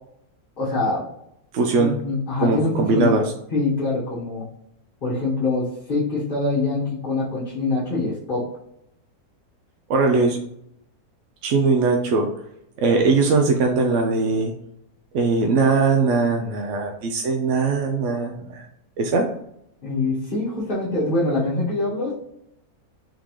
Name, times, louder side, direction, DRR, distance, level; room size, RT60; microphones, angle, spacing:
voice 1, 0.6-1.0 1.7-3.2 3.5-4.5 5.0-8.5 19.8-22.1, left 2 dB, 35° left, -8 dB, 1.2 m, -24 dB
voice 2, 1.5-1.9 2.4-3.2 9.9-10.4 11.4-12.3 12.8-14.5 15.1-18.7 19.0-19.3, right 4 dB, 70° right, 3 dB, 0.7 m, -20 dB
3.6 x 3.6 x 3.0 m, 0.76 s
omnidirectional pair, 1.7 m